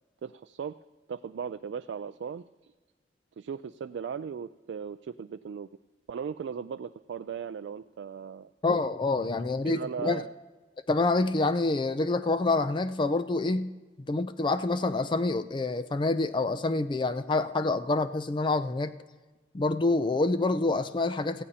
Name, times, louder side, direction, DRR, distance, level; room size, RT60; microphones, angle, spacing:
voice 1, 0.2-0.7 1.1-2.7 3.4-5.7 6.1-8.5 9.6-10.3, right 7 dB, 70° right, 11 dB, 0.3 m, -37 dB
voice 2, 8.6-10.2 10.9-13.7 14.0-19.0 19.5-21.4, left 3 dB, 25° left, 11 dB, 0.4 m, -27 dB
18.5 x 15.0 x 2.8 m, 1.3 s
head